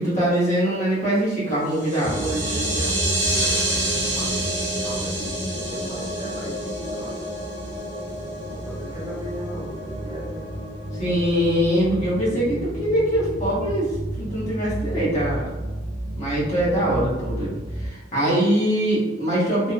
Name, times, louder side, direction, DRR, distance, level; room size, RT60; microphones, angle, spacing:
voice 1, 0.0-2.2 10.9-15.5 16.2-19.7, equal, 40° left, -8 dB, 0.9 m, -23 dB
sound 1, 1.7-7.8, right 2 dB, 85° right, 0.6 m, -28 dB
voice 2, 1.9-7.2 8.4-10.5 11.2-11.4 14.5-14.7, right 2 dB, 20° right, -8 dB, 0.7 m, -36 dB
sound 2, 2.0-17.9, equal, 80° left, 1.0 m, -31 dB
2.6 x 2.1 x 2.4 m, 1.1 s
head